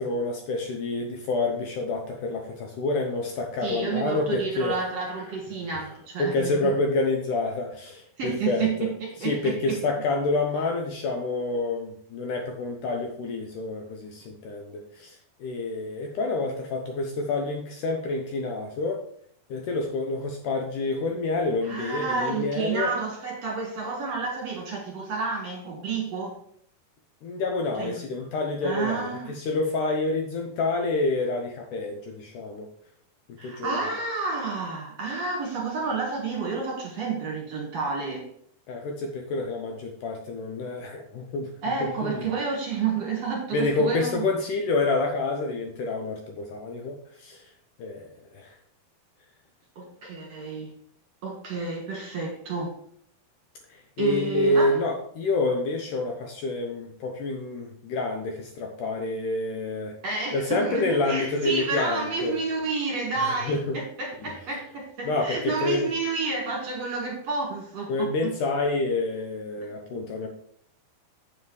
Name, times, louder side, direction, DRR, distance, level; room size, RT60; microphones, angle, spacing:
voice 1, 0.0-4.8 6.2-8.9 9.2-19.0 19.5-22.9 27.2-32.7 33.4-34.0 38.7-41.5 41.8-42.2 43.5-47.5 47.8-48.1 48.3-48.5 53.7-59.9 60.3-62.4 63.2-63.8 64.2-64.3 65.1-65.9 67.9-70.3, left 2 dB, 75° left, 2 dB, 2.1 m, -28 dB
voice 2, 3.6-6.7 8.2-9.8 21.6-26.4 27.8-28.0 28.6-29.3 33.4-38.3 41.6-44.2 49.8-50.7 51.2-52.7 54.0-54.8 55.4-55.5 60.0-68.3, right 4 dB, 50° right, -1 dB, 2.4 m, -30 dB
7.9 x 7.4 x 3.2 m, 0.63 s
omnidirectional pair, 4.3 m